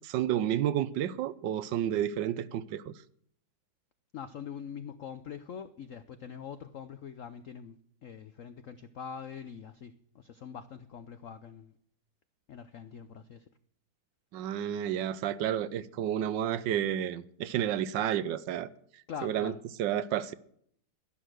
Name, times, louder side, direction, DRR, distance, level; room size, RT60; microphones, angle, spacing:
voice 1, 0.0-2.9 14.3-18.7 19.2-19.5 19.8-20.3, right 11 dB, 70° right, 1.3 m, -31 dB
voice 2, 4.1-7.8 8.0-11.7 12.5-13.5 19.1-19.6, left 7 dB, 75° left, 0.7 m, -43 dB
12.0 x 11.0 x 6.3 m
omnidirectional pair, 2.2 m